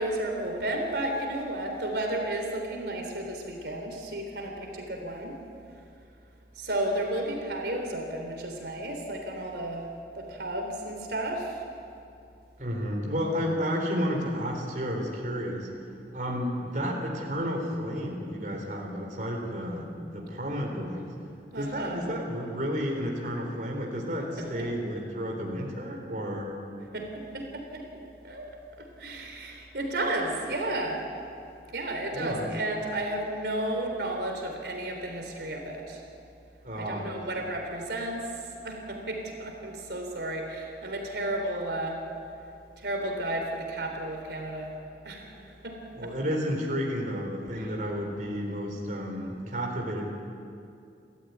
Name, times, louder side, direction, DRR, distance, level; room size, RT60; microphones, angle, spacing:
voice 1, 0.0-5.3 6.5-9.9 10.1-11.6 21.5-22.0 24.4-24.7 26.9-27.8 28.2-28.5 28.8-31.0 31.7-36.0 36.8-38.3 38.6-42.0 42.8-44.7 45.0-46.1, right 1 dB, 70° right, 2 dB, 3.7 m, -33 dB
voice 2, 12.6-15.7 16.1-21.1 21.5-26.5 32.1-32.5 36.6-37.2 46.0-50.1, equal, 45° right, 0 dB, 3.8 m, -31 dB
30.0 x 14.0 x 9.4 m, 2.5 s
head